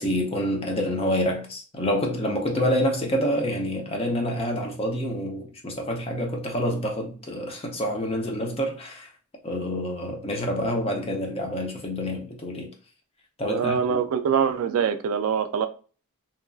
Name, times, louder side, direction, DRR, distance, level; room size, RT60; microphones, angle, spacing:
voice 1, 0.0-9.1 9.4-12.7 13.4-14.0, equal, 25° left, 0.6 m, -27 dB
voice 2, 13.4-15.7, right 7 dB, 65° right, 0.3 m, -24 dB
2.9 x 2.5 x 2.3 m
head